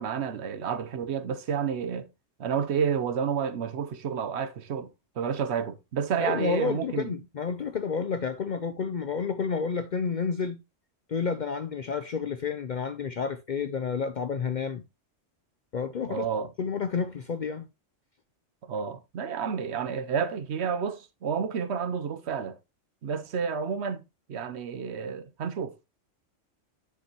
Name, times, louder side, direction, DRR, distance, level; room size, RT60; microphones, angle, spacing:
voice 1, 0.0-2.1 2.4-4.9 5.2-7.1 16.1-16.5 18.7-22.6 23.0-24.0 24.3-25.9, right 7 dB, 65° right, 1.0 m, -30 dB
voice 2, 6.2-10.6 11.1-14.8 15.7-16.3 16.6-17.7, left 6 dB, 55° left, 0.5 m, -30 dB
9.7 x 7.0 x 2.9 m
omnidirectional pair, 1.3 m